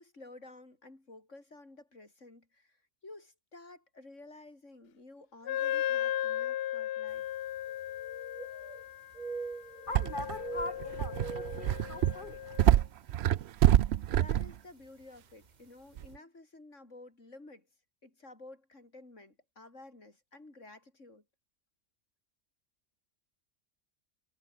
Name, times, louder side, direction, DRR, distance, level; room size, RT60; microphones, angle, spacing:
voice 1, 0.0-7.3 14.1-17.7 18.0-21.2, left 2 dB, 90° left, 5.4 m, -52 dB
Wind instrument woodwind instrument, 5.5-12.8, left 12 dB, 65° left, 0.7 m, -36 dB
sound 1, 7.2-7.3 7.6-8.9 9.1-10.0 10.3-12.5 12.9-13.0 13.7-13.9 15.0-15.1 15.4-15.5, right 4 dB, 40° right, 1.4 m, -43 dB
voice 2, 9.9-12.4, left 2 dB, 45° left, 2.1 m, -41 dB
sound 2, 9.9-14.5 16.0-16.1, right 12 dB, 65° right, 0.8 m, -26 dB
omnidirectional pair, 1.2 m